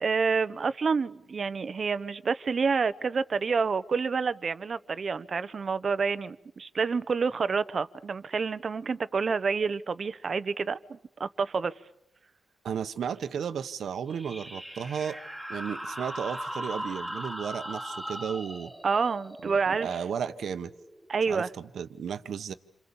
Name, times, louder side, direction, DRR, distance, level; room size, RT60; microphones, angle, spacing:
voice 1, 0.0-11.7 18.8-19.9 21.1-21.5, right 5 dB, 45° right, 1.0 m, -28 dB
voice 2, 12.6-15.2 15.5-18.7 19.4-20.7 21.3-22.5, right 7 dB, 75° right, 1.2 m, -34 dB
sound 1, 14.1-21.3, equal, 5° left, 2.8 m, -39 dB
28.5 x 26.5 x 7.2 m
wide cardioid pair, 120°, 0 cm